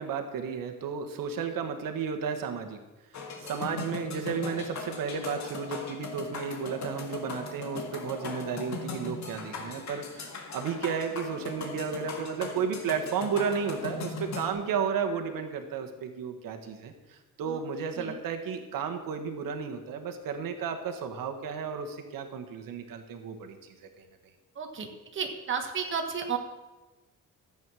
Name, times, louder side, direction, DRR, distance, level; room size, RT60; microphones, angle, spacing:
voice 1, 0.0-2.8 3.1-24.0, right 6 dB, 85° right, 5 dB, 1.5 m, -33 dB
sound 1, 3.1-14.5, left 4 dB, 55° left, 1.8 m, -39 dB
voice 2, 24.5-24.9 25.1-26.4, right 6 dB, 35° right, 3 dB, 1.4 m, -32 dB
14.0 x 8.3 x 6.2 m, 1.1 s
cardioid pair, 175°, 33 cm